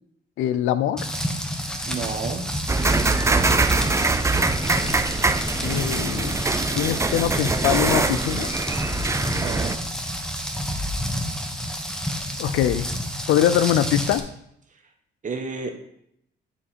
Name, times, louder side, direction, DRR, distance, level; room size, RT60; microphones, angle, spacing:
voice 1, 0.4-1.1 5.6-6.4 6.7-8.5 12.4-12.9 13.3-14.3, left 11 dB, 90° left, 14 dB, 0.5 m, -23 dB
Rain, 1.0-14.2, equal, 5° left, 1.1 m, -29 dB
voice 2, 1.9-2.5 9.3-9.8 14.7-14.8 15.2-15.7, right 5 dB, 40° right, 3 dB, 1.4 m, -31 dB
sound 1, 2.7-9.8, right 3 dB, 15° right, 0.4 m, -23 dB
11.5 x 3.8 x 4.3 m, 0.74 s
cardioid pair, 90°, 20 cm